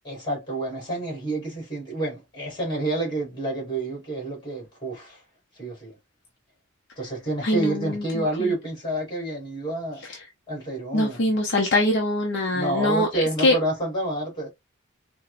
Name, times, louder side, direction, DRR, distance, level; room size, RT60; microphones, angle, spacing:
voice 1, 0.0-5.2 5.6-6.0 7.0-10.1 10.5-11.3 12.5-14.5, right 2 dB, 20° left, 2.2 m, -29 dB
voice 2, 7.4-8.5 10.9-13.5, left 1 dB, 55° left, 0.7 m, -23 dB
4.4 x 2.1 x 2.4 m
head